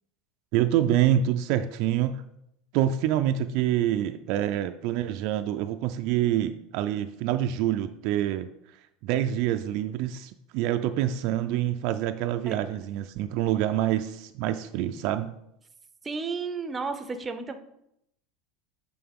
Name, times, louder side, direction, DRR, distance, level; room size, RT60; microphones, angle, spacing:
voice 1, 0.5-2.2 2.7-8.5 9.0-15.3, right 11 dB, 60° right, 8 dB, 0.3 m, -26 dB
voice 2, 16.0-17.6, right 4 dB, 20° right, 9 dB, 0.6 m, -32 dB
7.8 x 3.7 x 3.6 m, 0.79 s
supercardioid pair, 130°, 0 cm